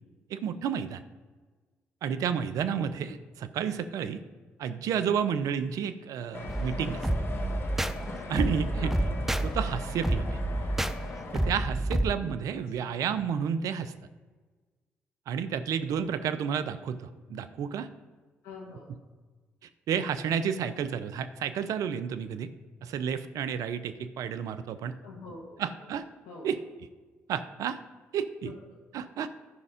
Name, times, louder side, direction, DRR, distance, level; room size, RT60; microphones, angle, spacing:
voice 1, 0.3-1.0 2.0-4.2 4.6-7.0 8.3-8.9 9.4-10.4 11.3-13.9 15.3-17.9 19.9-22.5 22.8-25.0 25.6-26.0 26.4-26.6 27.3-27.8 28.1-28.5 28.9-29.3, right 7 dB, 70° right, 11 dB, 0.6 m, -31 dB
sound 1, 6.3-11.5, left 3 dB, 40° left, 1.6 m, -40 dB
sound 2, 6.5-12.1, right 1 dB, 5° right, 0.5 m, -29 dB
voice 2, 8.7-9.2 12.8-13.0 18.4-18.9 25.0-25.9 26.2-26.5 28.4-28.5, left 4 dB, 75° left, -3 dB, 1.6 m, -44 dB
11.5 x 5.3 x 5.0 m, 1.4 s
hypercardioid pair, 50°, 6 cm